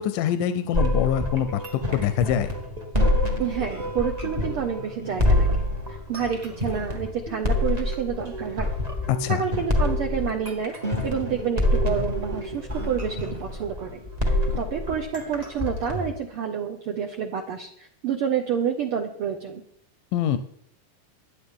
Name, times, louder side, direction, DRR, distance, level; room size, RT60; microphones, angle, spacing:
voice 1, 0.0-1.6 1.9-2.5 9.1-9.4 20.1-20.4, left 10 dB, 90° left, 10 dB, 2.2 m, -24 dB
sound 1, 0.7-16.1, left 1 dB, 35° right, 0.6 m, -26 dB
voice 2, 3.4-5.5 5.9-8.7 9.3-10.7 11.0-14.0 14.3-19.6, right 7 dB, 80° right, 4 dB, 1.2 m, -29 dB
23.0 x 8.3 x 3.7 m, 0.71 s
omnidirectional pair, 3.7 m